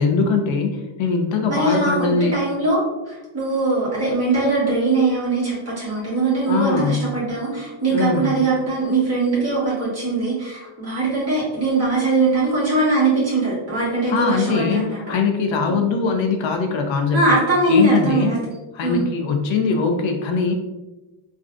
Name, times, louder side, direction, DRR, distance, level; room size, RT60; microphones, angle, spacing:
voice 1, 0.0-2.4 6.5-7.1 7.9-8.4 14.1-17.4 17.7-18.4 18.7-20.5, left 4 dB, 70° left, 4 dB, 0.5 m, -21 dB
voice 2, 1.5-15.0 17.1-18.5 18.8-19.0, right 3 dB, 30° right, -8 dB, 1.5 m, -21 dB
3.2 x 2.5 x 2.4 m, 1.1 s
wide cardioid pair, 165°, 48 cm